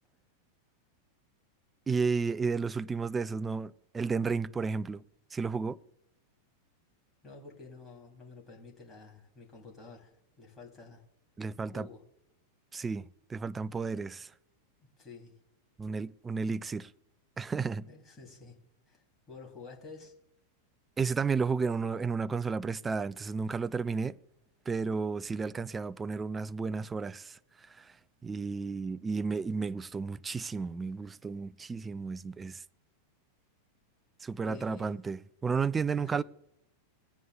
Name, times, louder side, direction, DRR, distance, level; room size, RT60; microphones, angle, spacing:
voice 1, 1.9-5.0 5.3-5.8 11.4-11.9 12.7-14.3 15.8-16.9 17.4-17.8 21.0-24.2 24.7-27.9 28.2-32.6 34.2-36.2, right 5 dB, 15° right, 0.3 m, -32 dB
voice 2, 7.2-11.0 11.6-12.0 14.8-15.3 16.3-16.4 17.8-18.6 18.9-20.1 34.4-35.0 35.8-36.2, left 4 dB, 15° left, 3.1 m, -50 dB
18.5 x 9.2 x 2.3 m
figure-of-eight pair, 90°, 0 cm